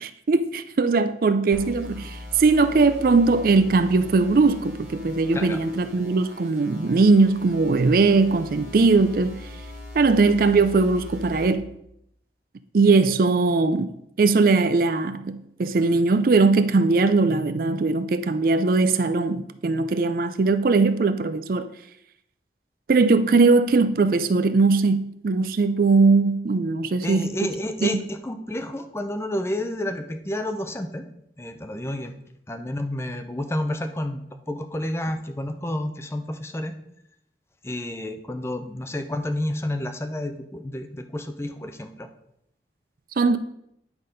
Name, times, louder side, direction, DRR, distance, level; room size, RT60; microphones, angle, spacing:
voice 1, 0.0-9.4 9.9-11.6 12.7-13.9 14.2-21.7 22.9-27.3 27.8-27.9 43.2-43.4, right 3 dB, 50° right, 0.4 m, -20 dB
sound 1, 1.5-11.5, left 1 dB, 5° right, 1.6 m, -41 dB
voice 2, 27.0-31.0 31.4-32.1 32.5-34.2 34.5-36.7 37.6-42.1, left 1 dB, 15° left, 0.5 m, -30 dB
9.6 x 4.1 x 5.1 m
head